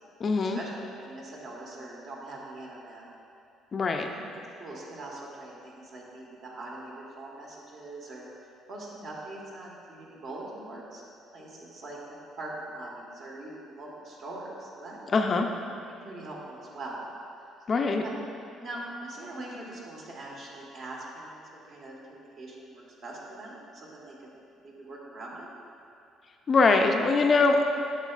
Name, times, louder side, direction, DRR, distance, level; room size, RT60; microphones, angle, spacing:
voice 1, 0.2-0.6 3.7-4.1 15.1-15.5 17.7-18.0 26.5-27.7, left 3 dB, 35° left, 4 dB, 0.4 m, -22 dB
voice 2, 1.0-3.0 4.1-11.0 11.3-15.0 15.9-17.1 18.0-18.1 18.6-24.3 24.6-25.5, right 2 dB, 55° right, -3 dB, 1.4 m, -42 dB
9.1 x 6.4 x 2.4 m, 2.6 s
cardioid pair, 120°, 0 cm